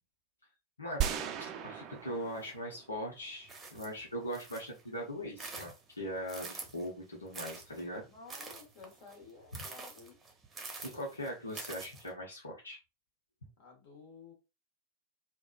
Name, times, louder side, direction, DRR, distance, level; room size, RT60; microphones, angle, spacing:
voice 1, 0.8-8.1 10.8-12.8, equal, 75° left, -1 dB, 0.9 m, -40 dB
sound 1, 1.0-3.3, right 9 dB, 35° right, 0.4 m, -37 dB
sound 2, 3.5-4.8 5.2-6.9 7.3-12.1, right 4 dB, 15° right, 0.8 m, -47 dB
voice 2, 8.1-10.2 13.6-14.3, left 4 dB, 50° left, 1 dB, 1.1 m, -53 dB
3.4 x 2.2 x 2.3 m, 0.27 s
figure-of-eight pair, 90°, 0 cm